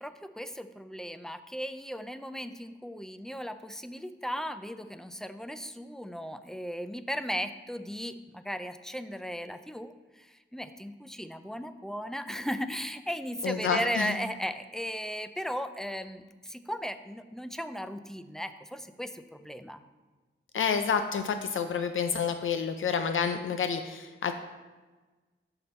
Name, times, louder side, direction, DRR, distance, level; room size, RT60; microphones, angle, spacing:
voice 1, 0.0-19.8, equal, ahead, 10 dB, 0.3 m, -36 dB
voice 2, 13.4-14.1 20.5-24.3, left 6 dB, 75° left, 7 dB, 0.5 m, -29 dB
6.8 x 5.6 x 4.2 m, 1.3 s
wide cardioid pair, 105°, 21 cm